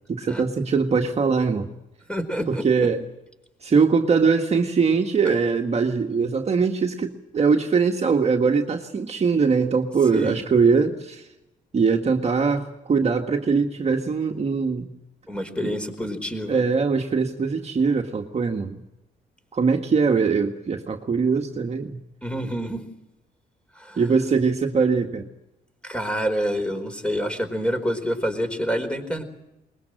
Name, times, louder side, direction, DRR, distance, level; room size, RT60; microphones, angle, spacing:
voice 1, 0.1-1.7 2.5-3.0 3.6-11.3 11.7-14.9 15.6-15.7 16.5-18.8 19.5-22.0 24.0-25.3, right 5 dB, 40° right, 3 dB, 1.7 m, -22 dB
voice 2, 2.1-2.6 10.1-10.4 15.3-16.6 22.2-22.8 23.8-24.0 25.8-29.2, equal, 5° left, 8 dB, 4.6 m, -27 dB
21.5 x 21.0 x 7.8 m, 0.91 s
cardioid pair, 85°, 17 cm